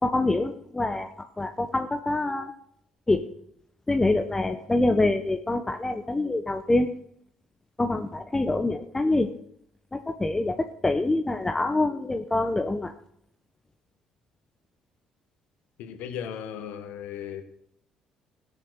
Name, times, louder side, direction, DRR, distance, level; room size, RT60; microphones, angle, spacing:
voice 1, 0.0-2.5 3.1-3.2 3.9-6.9 7.8-9.3 9.9-12.9, left 2 dB, 20° left, 6 dB, 1.1 m, -25 dB
voice 2, 15.8-17.4, left 8 dB, 70° left, 8 dB, 1.5 m, -36 dB
16.5 x 7.5 x 6.6 m, 0.71 s
hypercardioid pair, 50°, 3 cm